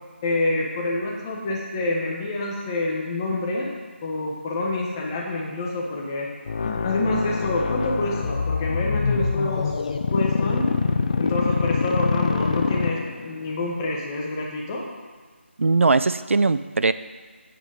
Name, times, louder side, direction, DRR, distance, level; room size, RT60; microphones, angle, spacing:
voice 1, 0.2-3.7 4.0-6.3 6.6-9.7 10.1-10.7 11.2-14.8, left 2 dB, 20° left, -2 dB, 1.0 m, -27 dB
sound 1, 6.5-13.4, left 5 dB, 35° left, 0.4 m, -24 dB
voice 2, 15.6-16.9, right 3 dB, 80° right, 13 dB, 0.4 m, -20 dB
8.5 x 5.1 x 5.1 m, 1.5 s
figure-of-eight pair, 165°, 7 cm